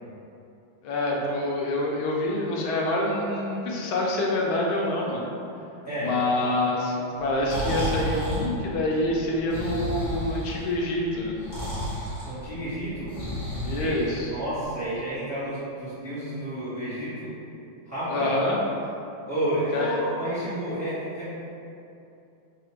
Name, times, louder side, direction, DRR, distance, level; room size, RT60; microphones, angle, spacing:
voice 1, 0.8-5.2 6.0-11.3 13.6-14.3 18.1-18.6 19.7-20.0, left 2 dB, 80° left, -2 dB, 1.4 m, -26 dB
Breathing, 7.2-14.6, equal, 35° left, 1.3 m, -32 dB
voice 2, 12.2-13.1 13.8-14.0 14.2-17.3 17.9-18.4 19.3-21.3, right 1 dB, 10° right, -14 dB, 1.1 m, -30 dB
3.5 x 2.4 x 4.4 m, 2.7 s
omnidirectional pair, 2.2 m